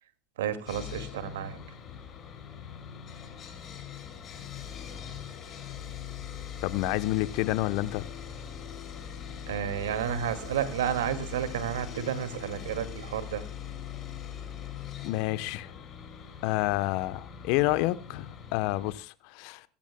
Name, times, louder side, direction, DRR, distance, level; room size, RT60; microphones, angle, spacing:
voice 1, 0.4-1.6 9.5-13.4, right 9 dB, 75° right, 2.1 m, -31 dB
Sawing, 0.7-18.9, left 8 dB, 40° left, 5.4 m, -42 dB
voice 2, 6.6-8.0 15.0-15.7 16.4-19.6, left 18 dB, 60° left, 0.9 m, -29 dB
24.0 x 13.5 x 2.2 m
hypercardioid pair, 85°, 0 cm